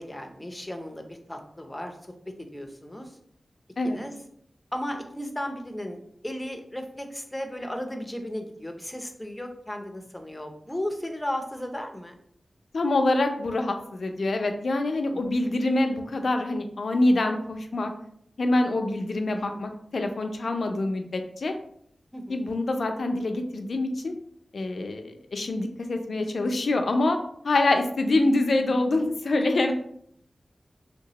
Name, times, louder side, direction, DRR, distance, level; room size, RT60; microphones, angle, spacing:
voice 1, 0.0-3.2 3.8-4.1 4.7-6.0 6.2-12.1 15.1-15.3 19.4-19.6 22.1-22.4, left 1 dB, 10° left, 4 dB, 0.6 m, -35 dB
voice 2, 12.7-17.9 18.4-21.5 22.3-24.1 24.5-27.2 27.4-29.7, left 2 dB, 75° left, 5 dB, 0.4 m, -25 dB
3.2 x 2.9 x 2.8 m, 0.67 s
wide cardioid pair, 75°, 0 cm